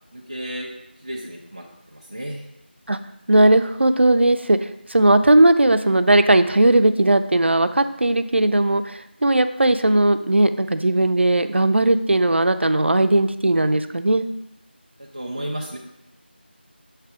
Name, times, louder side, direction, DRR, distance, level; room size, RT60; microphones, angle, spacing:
voice 1, 0.1-0.7 1.0-2.4 15.0-15.8, right 1 dB, 25° right, -5 dB, 0.5 m, -33 dB
voice 2, 3.3-14.2, right 1 dB, 80° right, 10 dB, 0.5 m, -17 dB
7.3 x 3.3 x 4.8 m, 0.86 s
figure-of-eight pair, 175°, 6 cm